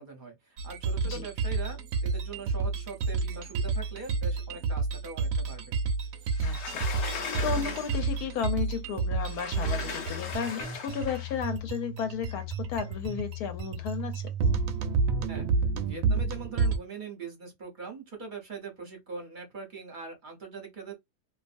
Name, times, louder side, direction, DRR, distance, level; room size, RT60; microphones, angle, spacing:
voice 1, 0.0-5.8 15.3-15.5 15.8-20.9, right 4 dB, 40° right, 0.7 m, -42 dB
sound 1, 0.6-16.8, right 4 dB, 70° right, 0.9 m, -30 dB
Sliding door, 6.3-8.3 9.2-11.4, left 5 dB, 55° left, 0.9 m, -38 dB
voice 2, 6.4-6.9 7.4-14.2, left 7 dB, 75° left, 1.1 m, -33 dB
2.6 x 2.3 x 2.5 m
omnidirectional pair, 1.7 m